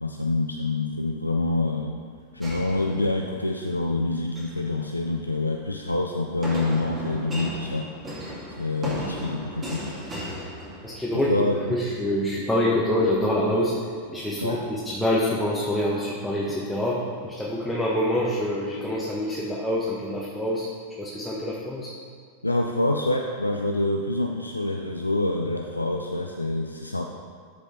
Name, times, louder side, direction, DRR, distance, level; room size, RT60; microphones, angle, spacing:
voice 1, 0.0-2.0 2.3-7.9 8.6-10.1 11.3-11.8 14.4-14.6 22.4-27.1, left 2 dB, 85° left, 2 dB, 0.5 m, -26 dB
sound 1, 2.4-3.5 4.2-4.7 6.4-11.3, equal, 20° right, 2.3 m, -35 dB
voice 2, 10.8-11.3 11.7-13.7 14.1-20.7 21.0-21.9, left 1 dB, 5° left, -6 dB, 1.4 m, -26 dB
13.0 x 5.3 x 4.1 m, 2.1 s
figure-of-eight pair, 90°, 0 cm